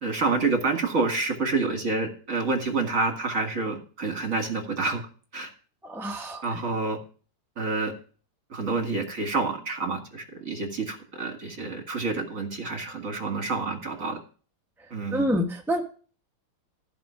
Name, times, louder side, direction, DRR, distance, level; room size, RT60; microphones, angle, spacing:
voice 1, 0.0-5.0 5.3-5.5 6.4-7.0 7.6-7.9 8.5-14.2 14.9-15.3, right 3 dB, 40° right, 4 dB, 2.4 m, -28 dB
voice 2, 5.8-6.4 15.1-15.8, equal, 5° right, 2 dB, 0.4 m, -27 dB
14.5 x 5.1 x 5.8 m, 0.40 s
omnidirectional pair, 2.3 m